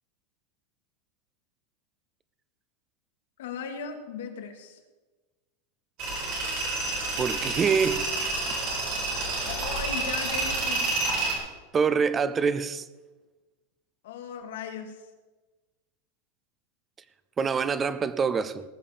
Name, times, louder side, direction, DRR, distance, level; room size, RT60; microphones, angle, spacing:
voice 1, 3.4-4.8 9.4-10.9 14.0-15.0, left 7 dB, 70° left, 2.2 m, -37 dB
Tools, 6.0-11.4, right 2 dB, 35° right, 4.5 m, -29 dB
voice 2, 7.2-8.6 11.7-12.9 17.4-18.6, right 5 dB, 15° right, 0.5 m, -26 dB
19.0 x 6.8 x 7.1 m
supercardioid pair, 175°, 0 cm